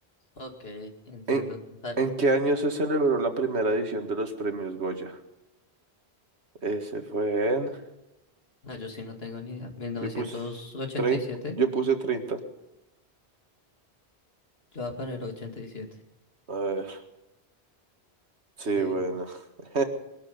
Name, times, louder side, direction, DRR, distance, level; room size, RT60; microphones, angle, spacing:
voice 1, 0.4-1.6 1.8-2.0 8.6-11.6 14.7-15.9 18.7-19.0, left 3 dB, 70° left, 4 dB, 2.7 m, -36 dB
voice 2, 2.0-5.2 6.6-7.8 10.0-10.4 11.0-11.2 11.6-12.4 16.5-17.0 18.6-19.8, right 3 dB, 90° right, 6 dB, 2.1 m, -27 dB
21.5 x 12.5 x 5.3 m, 0.94 s
omnidirectional pair, 1.1 m